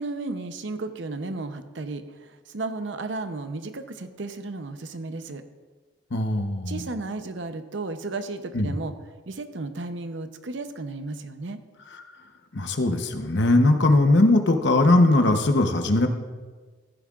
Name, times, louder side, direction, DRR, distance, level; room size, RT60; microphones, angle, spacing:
voice 1, 0.0-5.4 6.7-8.9 9.3-11.6, right 3 dB, 70° right, 9 dB, 0.7 m, -34 dB
voice 2, 6.1-6.8 8.5-8.7 12.5-16.1, left 2 dB, 65° left, 6 dB, 0.9 m, -20 dB
14.5 x 11.0 x 2.4 m, 1.4 s
head